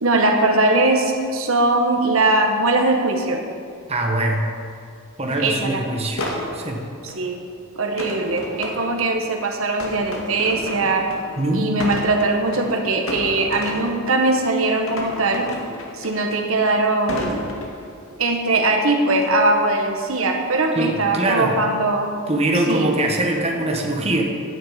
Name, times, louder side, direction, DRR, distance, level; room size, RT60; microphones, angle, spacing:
voice 1, 0.0-3.4 5.4-5.8 7.0-7.4 7.8-11.1 11.5-15.5 15.9-17.4 18.2-22.1 22.7-22.9, right 2 dB, 70° right, 3 dB, 1.5 m, -20 dB
voice 2, 3.9-4.5 5.2-6.2 6.5-6.8 11.4-11.9 20.7-21.5 22.3-24.2, right 1 dB, 30° right, 1 dB, 1.4 m, -22 dB
sound 1, 5.3-5.5 6.2-7.3 8.0-9.2 9.8-11.4 11.6-12.8 13.1-14.5 14.9-16.7 17.1-18.1 19.2-19.5 20.0-20.3, left 1 dB, 70° left, 2.2 m, -32 dB
10.5 x 6.9 x 8.8 m, 2.3 s
head